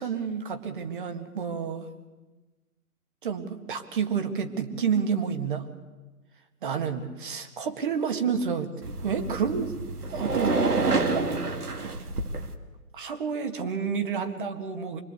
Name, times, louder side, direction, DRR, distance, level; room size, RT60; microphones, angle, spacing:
voice 1, 0.0-1.9 3.2-5.7 6.6-9.7 10.1-11.9 12.9-15.0, right 6 dB, 35° right, 7 dB, 1.9 m, -30 dB
sound 1, 8.8-12.5, right 3 dB, 70° right, 2.4 m, -28 dB
25.5 x 22.0 x 8.3 m, 1.2 s
figure-of-eight pair, 145°, 47 cm